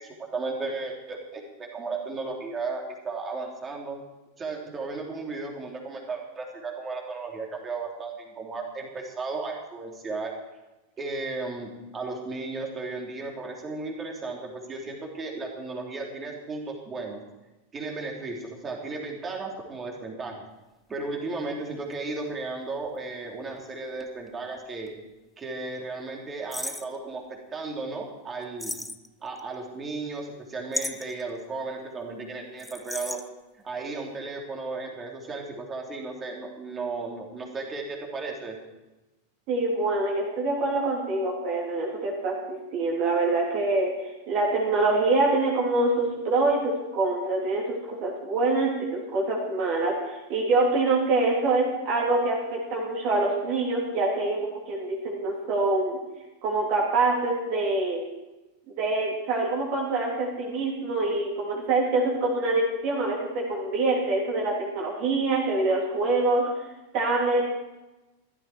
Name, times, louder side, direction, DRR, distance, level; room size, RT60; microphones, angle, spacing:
voice 1, 0.0-4.0 4.4-10.3 11.0-17.2 17.7-20.3 20.9-24.9 25.4-27.2 27.5-28.8 29.2-33.2 33.6-38.6, right 3 dB, 20° right, 0 dB, 3.2 m, -35 dB
sound 1, 20.9-21.0 21.9-24.6 24.9-25.0 26.5-27.0 28.6-29.4 30.7-31.2 32.6-33.3, left 2 dB, 5° left, 0.6 m, -35 dB
voice 2, 39.5-56.0 56.4-58.0 58.7-66.5 66.9-67.4, right 2 dB, 40° right, -2 dB, 3.6 m, -25 dB
15.5 x 12.5 x 4.6 m, 1.1 s
figure-of-eight pair, 90°, 0 cm